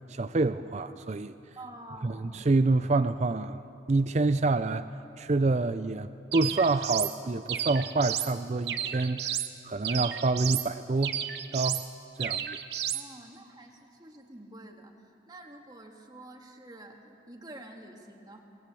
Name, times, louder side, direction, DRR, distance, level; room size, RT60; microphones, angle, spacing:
voice 1, 0.1-1.3 2.0-3.6 3.9-4.9 5.2-11.1 11.5-11.8 12.2-12.6, right 3 dB, 35° right, 11 dB, 0.4 m, -27 dB
voice 2, 1.6-2.3 12.9-14.9 15.2-18.4, right 1 dB, 20° right, 2 dB, 2.0 m, -48 dB
sound 1, 6.3-7.1 7.5-8.3 8.7-9.5 9.8-10.7 11.0-11.9 12.2-13.0, right 10 dB, 60° right, 1.0 m, -32 dB
23.0 x 20.5 x 8.5 m, 2.8 s
head